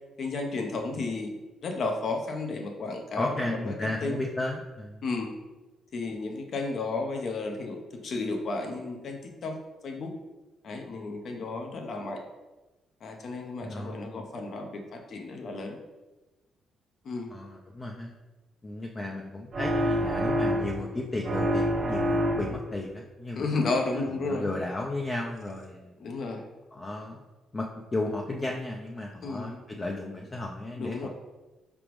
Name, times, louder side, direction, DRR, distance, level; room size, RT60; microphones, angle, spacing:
voice 1, 0.2-1.3 1.6-3.7 4.0-4.2 5.0-5.4 5.9-9.6 9.8-10.1 10.6-12.2 13.0-15.8 17.0-17.3 23.4-24.5 26.0-26.5 29.2-29.6 30.8-31.1, left 3 dB, 60° left, 3 dB, 0.7 m, -33 dB
voice 2, 3.2-5.1 13.6-14.3 17.3-18.1 18.6-25.9 26.7-27.2 27.5-31.1, left 2 dB, 25° left, 0 dB, 0.4 m, -34 dB
sound 1, 19.5-20.9 21.2-22.8, equal, 45° right, 0.7 m, -27 dB
4.9 x 3.4 x 3.1 m, 1.1 s
cardioid pair, 90°, 0 cm